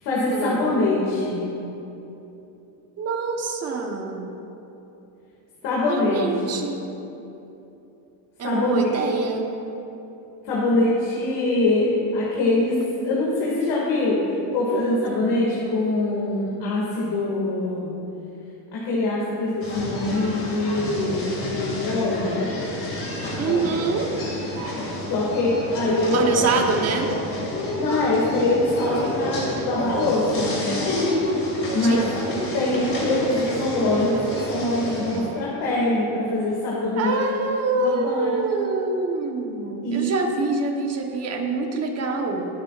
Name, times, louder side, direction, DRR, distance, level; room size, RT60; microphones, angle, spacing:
voice 1, 0.0-1.4 5.6-6.6 8.4-8.8 10.4-14.2 14.5-17.9 18.7-22.4 23.5-23.7 25.1-26.3 27.8-30.7 31.7-32.1 32.5-37.2 37.7-38.3 39.8-40.1, left 2 dB, 55° left, -6 dB, 2.3 m, -23 dB
voice 2, 3.0-4.3 5.9-6.8 8.4-9.6 23.4-24.2 26.1-27.1 31.8-32.2 37.0-42.5, right 3 dB, 30° right, 3 dB, 1.2 m, -25 dB
sound 1, 19.6-35.2, left 1 dB, 25° left, 2.4 m, -29 dB
sound 2, 24.6-26.4 26.7-36.2, right 3 dB, 70° right, 2.4 m, -36 dB
20.5 x 8.6 x 2.5 m, 3.0 s
cardioid pair, 140°, 47 cm